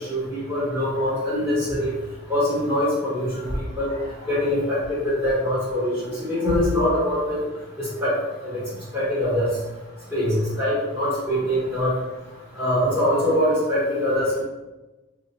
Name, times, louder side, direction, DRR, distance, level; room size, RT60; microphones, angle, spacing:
voice 1, 0.1-1.9 2.3-3.5 3.8-3.9 4.2-7.4 7.8-8.1 8.4-8.5 8.9-9.5 10.1-11.9 12.6-14.4, left 1 dB, 10° right, -9 dB, 1.4 m, -23 dB
4.5 x 2.2 x 2.9 m, 1.1 s
head